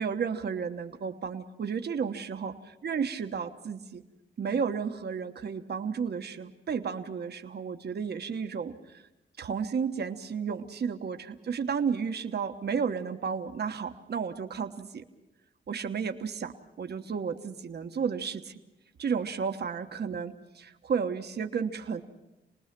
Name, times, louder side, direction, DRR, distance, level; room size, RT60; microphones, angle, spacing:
voice 1, 0.0-2.5 2.8-4.0 4.4-9.0 9.4-15.0 15.7-18.5 19.0-22.0, right 6 dB, 60° right, 5 dB, 1.3 m, -32 dB
28.0 x 19.5 x 6.0 m, 0.96 s
cardioid pair, 90°, 19 cm